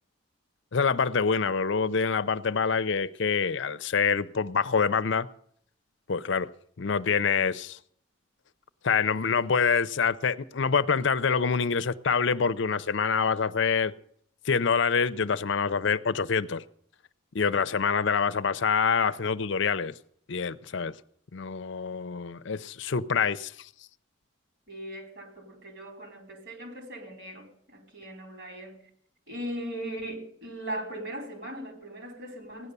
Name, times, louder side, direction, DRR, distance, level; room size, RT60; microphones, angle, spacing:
voice 1, 0.7-5.3 6.1-6.5 6.8-7.8 8.8-13.9 14.4-16.6 17.3-19.9 20.3-20.9 21.3-23.7, left 5 dB, 60° left, 0.6 m, -26 dB
voice 2, 24.7-28.8 29.3-32.7, right 1 dB, 60° right, 4.6 m, -39 dB
16.5 x 11.0 x 6.8 m
head